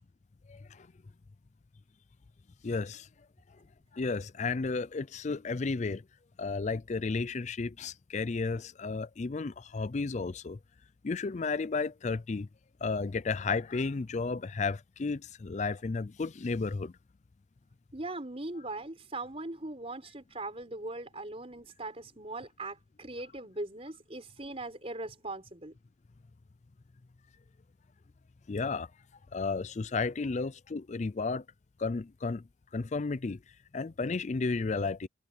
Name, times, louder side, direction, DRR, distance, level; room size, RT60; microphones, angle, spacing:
voice 1, 0.5-0.9 2.6-3.1 3.9-6.0 6.4-10.6 11.0-12.5 12.8-16.9 28.5-28.9 29.3-31.4 31.8-32.4 32.7-33.4 33.7-35.1, left 4 dB, 35° left, 0.4 m, -33 dB
voice 2, 17.9-25.7, right 2 dB, 30° right, 4.6 m, -40 dB
head